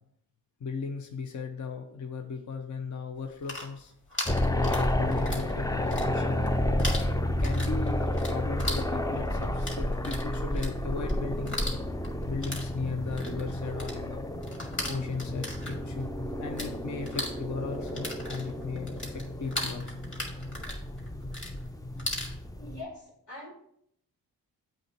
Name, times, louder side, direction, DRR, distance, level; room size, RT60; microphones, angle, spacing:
voice 1, 0.6-3.9 4.5-6.5 7.4-11.6 12.3-14.2 14.9-16.1 16.4-20.0, left 4 dB, 45° left, 5 dB, 0.7 m, -37 dB
sound 1, 3.2-5.5 5.8-6.5 6.8-16.7 17.0-22.3, left 1 dB, 30° left, 2.2 m, -38 dB
sound 2, 4.2-22.8, left 1 dB, 10° left, 0.4 m, -31 dB
voice 2, 22.6-23.6, left 2 dB, 85° left, -4 dB, 2.3 m, -43 dB
7.7 x 3.1 x 4.4 m, 0.71 s
supercardioid pair, 40°, 42 cm